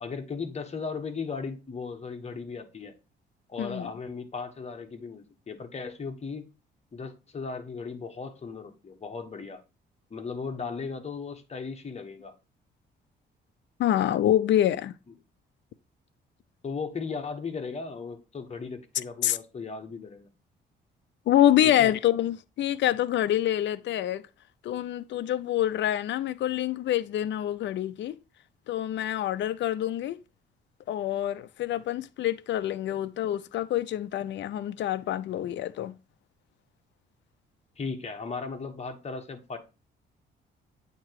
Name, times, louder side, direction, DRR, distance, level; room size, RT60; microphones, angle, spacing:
voice 1, 0.0-2.9 3.5-6.5 6.9-9.6 10.1-12.3 16.6-20.3 21.6-21.9 37.8-39.6, left 4 dB, 35° left, 1.4 m, -36 dB
voice 2, 13.8-14.9 19.2-19.4 21.3-24.2 24.6-28.1 28.7-30.2 30.9-35.9, left 12 dB, 65° left, 0.5 m, -26 dB
8.5 x 3.0 x 4.7 m
cardioid pair, 90°, 20 cm